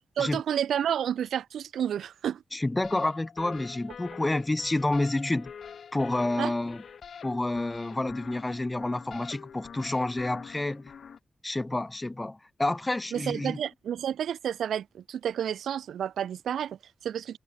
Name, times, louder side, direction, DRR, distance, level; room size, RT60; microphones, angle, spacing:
voice 1, 0.2-2.4 6.4-6.5 13.1-17.4, right 9 dB, 80° right, 4.1 m, -30 dB
voice 2, 2.5-5.5 5.9-6.8 7.2-10.9 11.4-13.6, left 2 dB, 25° left, 4.9 m, -29 dB
sound 1, 2.8-11.2, left 7 dB, 70° left, 8.0 m, -45 dB
supercardioid pair, 45°, 0 cm